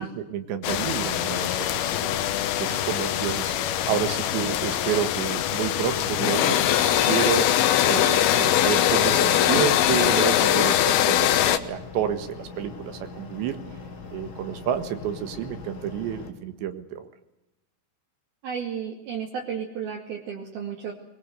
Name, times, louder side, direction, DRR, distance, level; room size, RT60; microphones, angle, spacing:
voice 1, 0.0-2.2 2.6-3.5 3.9-7.5 7.9-13.6 14.1-17.1, right 9 dB, 80° right, 9 dB, 3.8 m, -30 dB
sound 1, 0.6-11.6, left 11 dB, 70° left, 2.7 m, -22 dB
sound 2, 11.1-16.3, left 4 dB, 40° left, 3.4 m, -41 dB
voice 2, 18.4-20.9, right 7 dB, 60° right, -2 dB, 4.1 m, -33 dB
22.5 x 22.0 x 8.2 m, 0.92 s
omnidirectional pair, 5.2 m